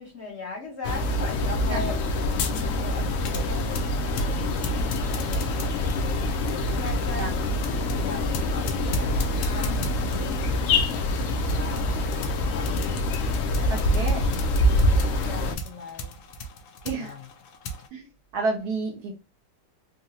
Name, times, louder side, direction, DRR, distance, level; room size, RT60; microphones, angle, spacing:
voice 1, 0.0-2.1 2.4-6.2 6.5-7.5 8.0-12.9 13.5-14.0 14.6-16.2 16.8-17.3, left 3 dB, 45° left, 1.0 m, -40 dB
sound 1, 0.8-15.6, left 1 dB, 90° left, 0.7 m, -25 dB
sound 2, 3.1-17.9, left 1 dB, 70° left, 1.1 m, -38 dB
voice 2, 13.7-14.2 16.8-17.1 17.9-18.0 18.3-19.1, right 3 dB, 65° right, 1.2 m, -29 dB
3.9 x 2.1 x 2.7 m
omnidirectional pair, 2.0 m